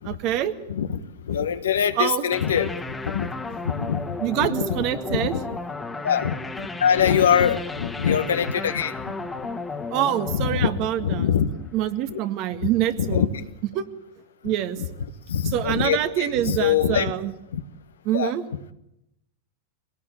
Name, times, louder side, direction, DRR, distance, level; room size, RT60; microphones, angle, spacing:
voice 1, 0.1-0.5 2.0-2.3 4.2-5.3 9.9-11.3 11.7-13.3 13.7-13.9 14.4-14.8 15.4-17.3 18.1-18.4, right 11 dB, 50° right, 9 dB, 1.9 m, -25 dB
voice 2, 0.7-1.0 1.3-2.7 3.0-3.3 3.6-4.0 4.4-4.8 5.1-5.4 6.0-6.3 6.8-8.9 10.3-10.7 11.0-11.5 12.1-12.2 13.0-13.3 14.8-14.9 15.3-17.1 17.5-17.6 18.1-18.3, left 8 dB, 90° left, 9 dB, 1.4 m, -23 dB
sound 1, 2.3-11.7, left 3 dB, 10° left, 1.7 m, -34 dB
22.5 x 18.0 x 8.7 m, 0.82 s
hypercardioid pair, 110°, 0 cm